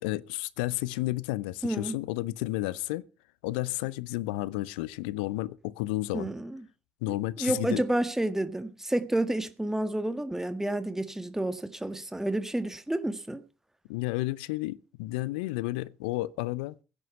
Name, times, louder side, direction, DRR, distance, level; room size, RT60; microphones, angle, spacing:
voice 1, 0.0-3.0 3.4-6.3 7.0-7.8 13.9-16.7, left 18 dB, 80° left, 0.6 m, -32 dB
voice 2, 1.6-2.0 6.1-6.7 7.4-13.4, right 1 dB, 10° right, 1.7 m, -30 dB
16.5 x 9.2 x 5.7 m
hypercardioid pair, 45°, 5 cm